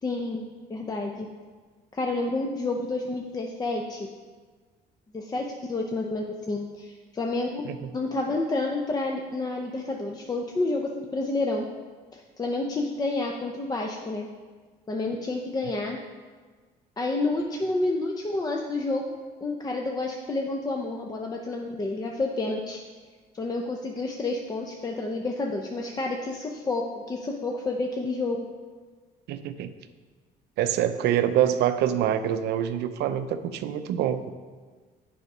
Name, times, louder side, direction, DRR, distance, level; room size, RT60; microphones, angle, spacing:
voice 1, 0.0-1.3 1.9-4.1 5.1-7.7 7.9-11.7 12.1-14.3 14.9-16.0 17.0-19.2 19.4-22.8 23.3-28.5, left 2 dB, 25° left, 1 dB, 0.6 m, -29 dB
voice 2, 29.3-29.7 30.6-34.3, right 10 dB, 80° right, 10 dB, 0.5 m, -25 dB
6.9 x 4.9 x 5.3 m, 1.5 s
cardioid pair, 110°, 17 cm